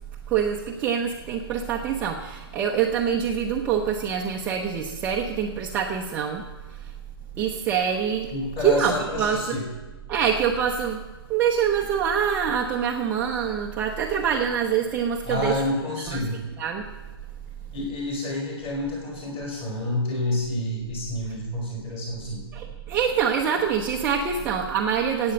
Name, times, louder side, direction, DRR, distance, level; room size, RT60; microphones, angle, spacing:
voice 1, 0.3-6.4 6.7-6.9 7.4-8.3 8.6-9.6 10.1-11.0 11.3-15.6 16.0-16.3 16.6-16.9 22.5-25.3, right 7 dB, 10° right, 0 dB, 0.7 m, -25 dB
voice 2, 8.3-9.6 15.2-16.4 17.7-22.4, left 2 dB, 20° left, -1 dB, 4.8 m, -29 dB
14.0 x 8.7 x 8.6 m, 1.2 s
hypercardioid pair, 165°, 13 cm